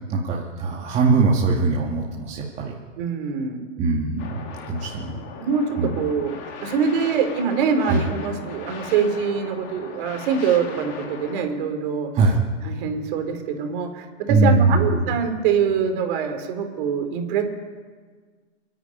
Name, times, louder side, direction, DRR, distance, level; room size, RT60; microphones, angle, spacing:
voice 1, 0.1-2.7 3.8-4.4 4.7-5.2 5.8-5.9 7.8-8.0 12.1-12.4 14.3-15.0, right 3 dB, 15° right, -3 dB, 2.1 m, -21 dB
voice 2, 3.0-3.7 5.4-12.1 12.6-17.4, right 6 dB, 40° right, 5 dB, 3.9 m, -24 dB
sound 1, 4.2-11.5, left 6 dB, 30° left, 2.8 m, -39 dB
29.0 x 10.5 x 9.3 m, 1.5 s
hypercardioid pair, 155°, 38 cm